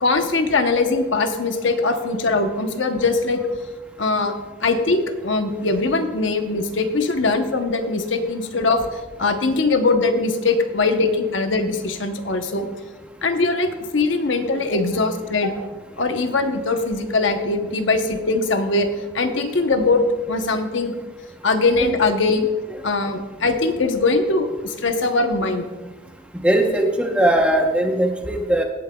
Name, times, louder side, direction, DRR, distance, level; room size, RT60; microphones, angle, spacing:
voice 1, 0.0-3.4 4.0-4.3 4.6-12.7 13.2-15.5 16.0-18.9 19.1-20.0 20.3-20.9 21.4-22.5 22.8-25.7, left 3 dB, 70° left, 6 dB, 0.9 m, -21 dB
voice 2, 26.4-28.6, right 1 dB, 5° right, 3 dB, 0.8 m, -19 dB
17.0 x 8.7 x 2.3 m, 1.3 s
head